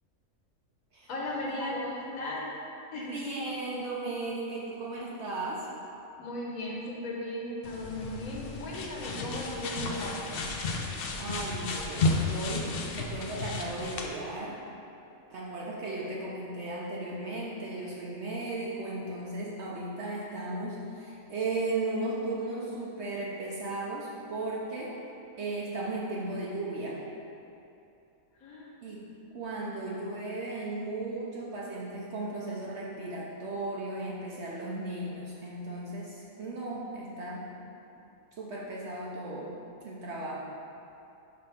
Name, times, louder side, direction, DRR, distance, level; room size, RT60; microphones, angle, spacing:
voice 1, 1.1-2.5 2.9-3.2 6.2-10.2 28.4-28.7, left 1 dB, 90° left, -3 dB, 1.4 m, -36 dB
voice 2, 3.0-5.7 11.2-14.6 15.3-25.0 25.4-27.0 28.8-29.0 29.3-37.5 38.4-39.6 39.8-40.5, right 2 dB, 60° right, -5 dB, 0.9 m, -36 dB
sound 1, 7.6-14.1, left 3 dB, 60° left, 0.6 m, -33 dB
5.2 x 3.4 x 5.6 m, 2.8 s
omnidirectional pair, 1.4 m